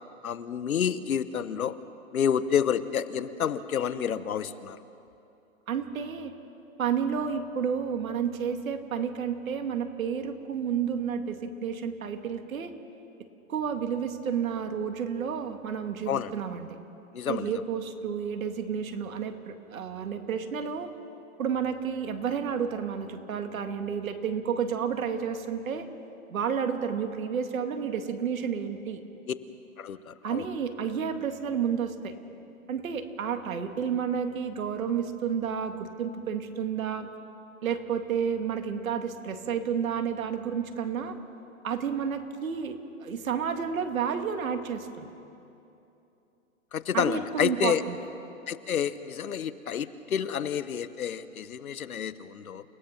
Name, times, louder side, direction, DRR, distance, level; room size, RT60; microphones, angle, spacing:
voice 1, 0.2-1.8 2.1-4.8 16.1-16.3 17.1-17.5 29.3-29.4 29.8-30.5 46.7-47.8 48.5-52.6, left 8 dB, 90° left, 14 dB, 1.2 m, -29 dB
voice 2, 5.7-6.3 6.8-12.7 13.5-16.8 17.3-20.9 21.4-25.9 26.3-29.0 30.2-32.1 32.7-37.1 37.6-41.1 41.6-45.1 46.9-48.0, right 7 dB, 75° right, 6 dB, 2.3 m, -31 dB
30.0 x 18.0 x 6.0 m, 2.8 s
hypercardioid pair, 145°, 41 cm